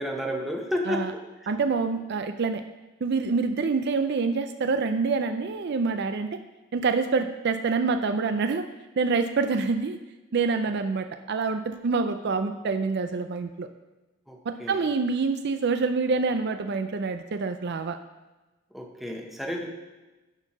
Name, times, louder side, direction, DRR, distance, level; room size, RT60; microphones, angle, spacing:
voice 1, 0.0-1.5 14.3-14.8 18.7-19.7, equal, ahead, 1 dB, 1.0 m, -32 dB
voice 2, 1.5-2.6 3.0-6.3 6.7-8.7 9.0-10.0 10.3-13.7 14.5-18.0, right 4 dB, 55° right, 8 dB, 0.5 m, -26 dB
10.5 x 4.5 x 5.9 m, 1.1 s
head